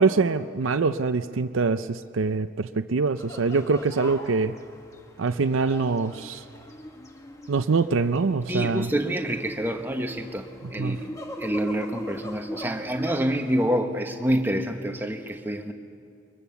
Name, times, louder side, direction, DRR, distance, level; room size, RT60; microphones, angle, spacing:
voice 1, 0.0-4.5 5.2-6.4 7.5-8.9 10.8-11.0, right 4 dB, 85° right, 10 dB, 0.5 m, -24 dB
sound 1, 3.2-13.7, left 1 dB, 15° left, 1.2 m, -41 dB
voice 2, 8.5-11.1 11.4-15.7, equal, 10° right, 4 dB, 1.2 m, -27 dB
23.5 x 21.5 x 7.0 m, 2.4 s
head